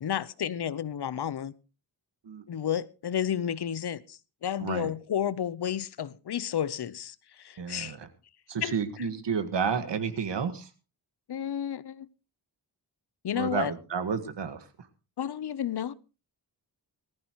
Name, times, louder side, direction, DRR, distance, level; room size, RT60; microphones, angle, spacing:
voice 1, 0.0-1.5 2.5-8.0 8.6-8.7 11.3-12.1 13.2-13.7 15.2-15.9, left 9 dB, 65° left, 0.8 m, -31 dB
voice 2, 4.6-4.9 7.6-8.1 8.5-10.7 13.3-14.7, right 6 dB, 75° right, 1.8 m, -31 dB
19.5 x 14.0 x 3.0 m
wide cardioid pair, 110°, 43 cm